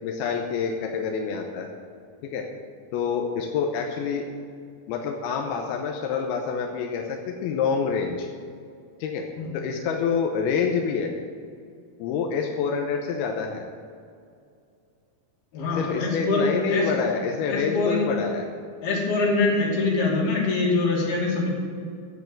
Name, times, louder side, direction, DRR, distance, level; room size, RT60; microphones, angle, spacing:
voice 1, 0.0-1.7 2.2-2.5 2.9-4.2 4.9-8.3 9.0-9.3 9.5-11.1 12.0-13.6 15.7-18.5, left 6 dB, 85° left, 1 dB, 2.8 m, -27 dB
voice 2, 15.5-16.8 17.5-18.1 18.8-21.5, left 3 dB, 70° left, -3 dB, 4.5 m, -24 dB
11.5 x 8.2 x 7.7 m, 2.3 s
omnidirectional pair, 4.5 m